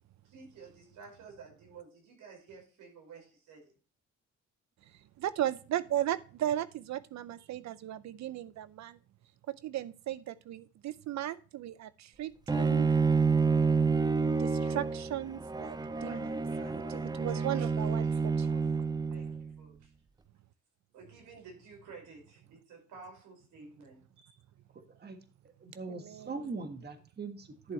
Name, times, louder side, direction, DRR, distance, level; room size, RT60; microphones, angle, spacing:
voice 1, 0.2-3.7 15.8-17.7 18.0-19.9 20.9-24.3, right 4 dB, 85° right, 1 dB, 5.3 m, -52 dB
voice 2, 5.2-9.0 9.5-12.9 14.3-16.3 16.7-18.5 25.9-26.3, right 12 dB, 65° right, 16 dB, 0.6 m, -36 dB
Bowed string instrument, 12.5-19.5, right 5 dB, 15° right, 0.6 m, -29 dB
voice 3, 24.7-25.2 25.6-27.7, right 3 dB, 35° right, 7 dB, 1.6 m, -41 dB
11.0 x 7.0 x 3.1 m, 0.37 s
cardioid pair, 90°, 30 cm